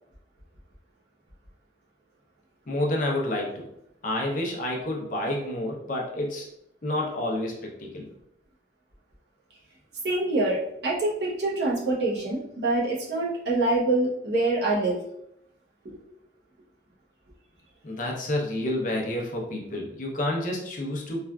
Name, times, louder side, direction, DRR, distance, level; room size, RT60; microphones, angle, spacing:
voice 1, 2.7-3.7 4.0-6.5 6.8-8.1 17.8-21.2, left 1 dB, 45° left, -1 dB, 0.6 m, -29 dB
voice 2, 10.0-15.0 15.8-16.0, right 2 dB, 65° right, -5 dB, 0.8 m, -25 dB
3.3 x 2.4 x 2.2 m, 0.76 s
head